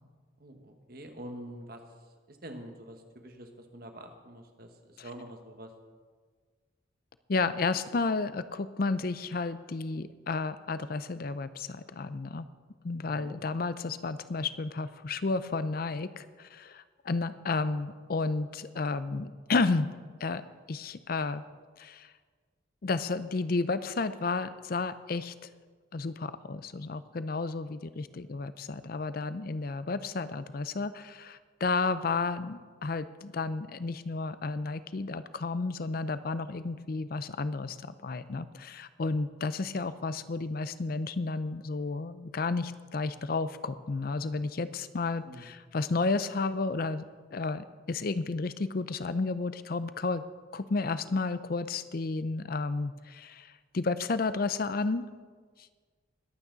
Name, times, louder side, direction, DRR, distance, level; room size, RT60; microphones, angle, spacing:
voice 1, 0.4-1.8 2.3-5.7 13.0-13.4 45.2-45.5, right 1 dB, 50° right, 5 dB, 1.4 m, -46 dB
voice 2, 7.3-12.5 12.8-19.9 20.2-20.4 20.7-21.4 21.8-22.1 22.8-25.3 25.9-37.8 38.0-47.0 47.3-50.2 50.5-55.0, left 3 dB, 50° left, 14 dB, 0.5 m, -32 dB
21.0 x 8.6 x 4.0 m, 1.5 s
head